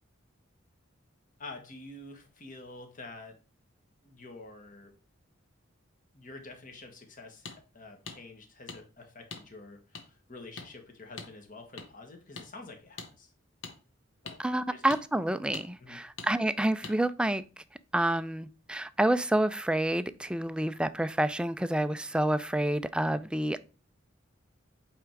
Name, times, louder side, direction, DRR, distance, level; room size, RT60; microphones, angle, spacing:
voice 1, 1.4-3.4 4.0-4.9 6.1-13.3 14.2-14.4 14.7-14.8 15.8-16.0, left 2 dB, 45° left, 1.5 m, -48 dB
sound 1, 7.5-7.6 8.1-8.2 8.7-8.8 9.3-9.4 9.9-10.0 10.6-10.7 11.2-11.3 11.8-11.9 12.4-12.5 13.0-13.1 13.6-13.7 14.3-14.4 14.9-15.0 15.5-15.7 16.2-16.3 16.8-17.0, left 4 dB, 75° left, 1.3 m, -42 dB
voice 2, 14.4-17.6 17.9-23.6, right 1 dB, 5° right, 0.3 m, -28 dB
8.3 x 3.6 x 4.5 m
head